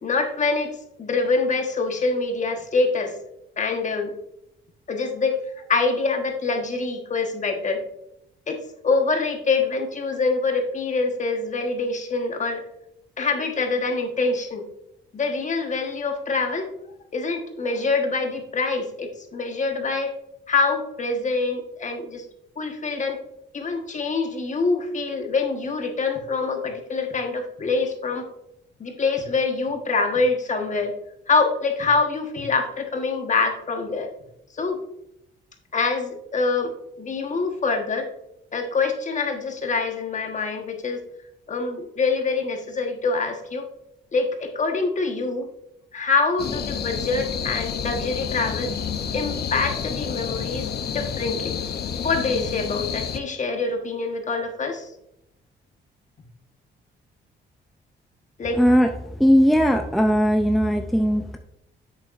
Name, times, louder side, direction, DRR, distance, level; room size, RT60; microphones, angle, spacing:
voice 1, 0.0-3.1 3.6-4.1 4.9-7.8 8.5-8.6 8.8-12.6 13.2-14.6 15.1-16.7 17.1-20.1 20.5-22.2 22.6-23.2 23.5-28.3 28.8-30.9 31.3-34.1 34.5-34.8 35.7-38.1 38.5-41.0 41.5-43.7 44.1-45.5 45.9-48.7 49.1-51.6 52.0-54.9 58.4-58.6, left 4 dB, 40° left, 4 dB, 1.3 m, -25 dB
sound 1, 46.4-53.2, left 7 dB, 55° left, 0.7 m, -29 dB
voice 2, 58.5-61.4, equal, ahead, 4 dB, 0.5 m, -19 dB
8.0 x 6.7 x 2.5 m, 0.82 s
cardioid pair, 90°, 20 cm